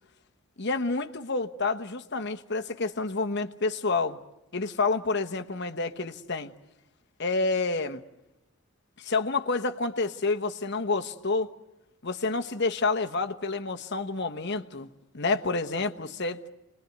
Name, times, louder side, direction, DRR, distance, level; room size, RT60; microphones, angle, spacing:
voice 1, 0.6-4.2 4.5-6.5 7.2-8.0 9.0-11.5 12.0-14.9 15.1-16.4, left 3 dB, 50° left, 1.1 m, -29 dB
28.5 x 21.0 x 9.3 m
head